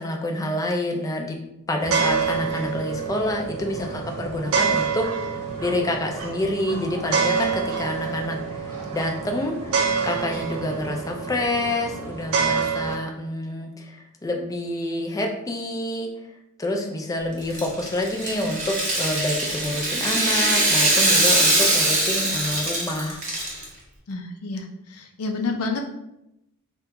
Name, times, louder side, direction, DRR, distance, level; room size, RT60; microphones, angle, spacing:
voice 1, 0.0-1.4 1.7-16.1 16.6-23.2, left 1 dB, 15° left, 2 dB, 0.4 m, -28 dB
sound 1, 1.8-13.0, right 5 dB, 75° right, 0.5 m, -27 dB
Rattle (instrument), 17.4-23.6, right 1 dB, 35° right, 0.9 m, -22 dB
voice 2, 24.1-24.7 25.0-25.8, left 3 dB, 85° left, 3 dB, 0.5 m, -28 dB
2.8 x 2.2 x 3.5 m, 0.84 s
head